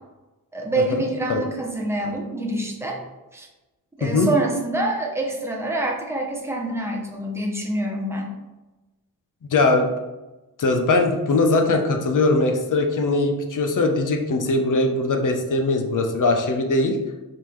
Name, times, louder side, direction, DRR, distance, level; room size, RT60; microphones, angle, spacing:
voice 1, 0.5-3.0 3.3-3.5 4.0-8.4, right 1 dB, 5° right, 0 dB, 0.6 m, -26 dB
voice 2, 9.5-9.9 10.6-17.0, left 2 dB, 55° left, 4 dB, 0.7 m, -20 dB
4.7 x 3.6 x 3.1 m, 1.1 s
wide cardioid pair, 155°, 37 cm